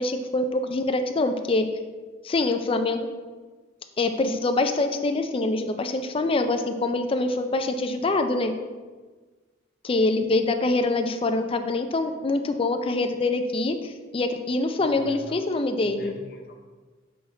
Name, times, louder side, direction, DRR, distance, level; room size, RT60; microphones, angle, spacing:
voice 1, 0.0-1.7 2.2-3.1 4.0-8.5 9.8-16.1, left 2 dB, 30° left, 7 dB, 0.4 m, -25 dB
voice 2, 14.8-15.4 15.8-16.6, left 2 dB, 50° left, 3 dB, 0.7 m, -43 dB
6.5 x 4.1 x 3.8 m, 1.4 s
head